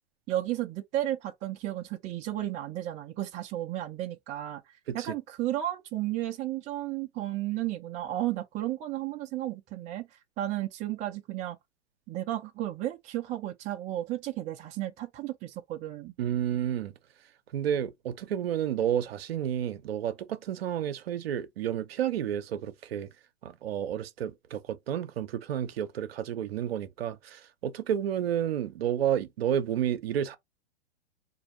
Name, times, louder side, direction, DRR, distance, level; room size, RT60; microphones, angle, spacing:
voice 1, 0.3-4.6 4.9-10.1 10.4-11.6 12.1-16.1, right 14 dB, 20° right, 0.5 m, -33 dB
voice 2, 16.2-16.9 17.5-23.1 23.4-30.4, right 10 dB, 60° right, 0.7 m, -31 dB
4.2 x 2.6 x 3.0 m
figure-of-eight pair, 110°, 34 cm